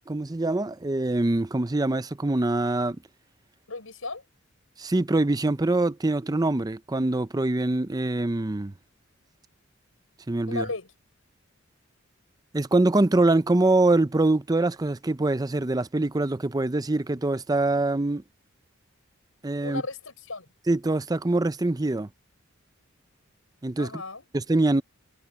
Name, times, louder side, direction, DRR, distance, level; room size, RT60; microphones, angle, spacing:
voice 1, 0.1-3.0 4.8-8.7 10.3-10.6 12.5-18.2 19.4-19.8 20.7-22.1 23.6-24.0 24.3-24.8, right 2 dB, 20° right, 0.6 m, -24 dB
voice 2, 3.7-4.2 10.5-10.9 19.6-20.5 23.8-24.2, left 3 dB, 90° left, 5.0 m, -35 dB
head